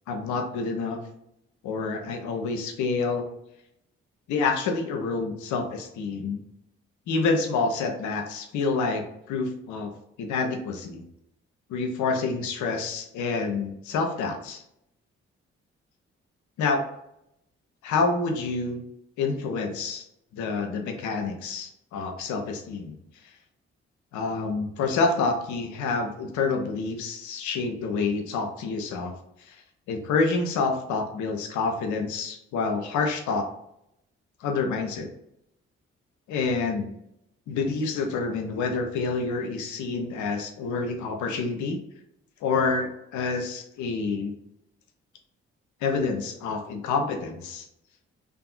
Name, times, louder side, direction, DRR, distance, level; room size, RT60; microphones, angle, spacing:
voice 1, 0.1-1.0 1.6-3.2 4.3-6.4 7.1-9.9 10.2-11.0 11.7-14.6 16.6-16.8 17.8-18.8 19.2-20.0 20.3-23.0 24.1-29.1 29.4-29.6 29.9-33.5 34.4-35.1 36.3-36.9 37.5-41.8 42.4-44.3 45.8-47.7, left 4 dB, 75° left, 4 dB, 0.6 m, -28 dB
2.6 x 2.4 x 2.4 m, 0.79 s
hypercardioid pair, 40°, 30 cm